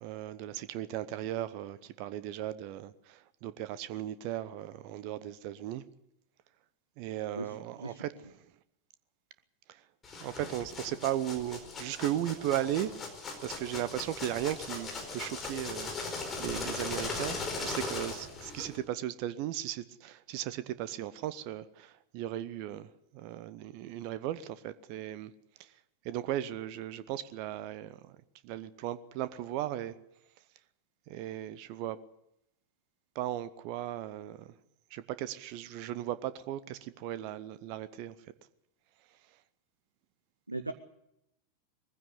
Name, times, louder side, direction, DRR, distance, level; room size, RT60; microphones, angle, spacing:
voice 1, 0.0-5.8 7.0-8.4 10.2-12.9 13.4-22.9 23.1-25.3 25.6-25.7 26.0-28.2 28.4-29.9 31.1-32.0 33.1-34.5 34.9-38.1, right 12 dB, 45° right, 0.9 m, -36 dB
voice 2, 7.3-8.0 40.5-40.7, right 2 dB, 85° right, 0.9 m, -39 dB
sound 1, 10.0-18.8, left 3 dB, 20° left, 4.6 m, -39 dB
20.5 x 15.5 x 8.2 m
figure-of-eight pair, 90°, 0 cm